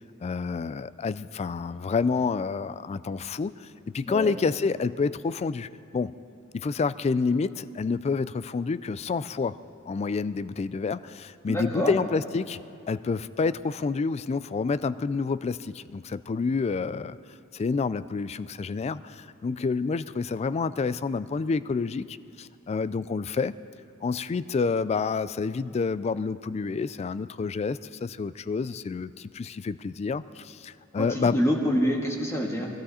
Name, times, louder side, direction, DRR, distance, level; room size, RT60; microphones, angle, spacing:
voice 1, 0.2-6.2 6.5-9.6 9.9-12.6 12.9-17.2 17.5-23.5 24.0-31.4, left 4 dB, 30° left, 16 dB, 0.3 m, -28 dB
voice 2, 11.5-11.9 31.0-32.7, equal, 15° left, 0 dB, 1.8 m, -26 dB
21.5 x 16.0 x 4.2 m, 2.6 s
head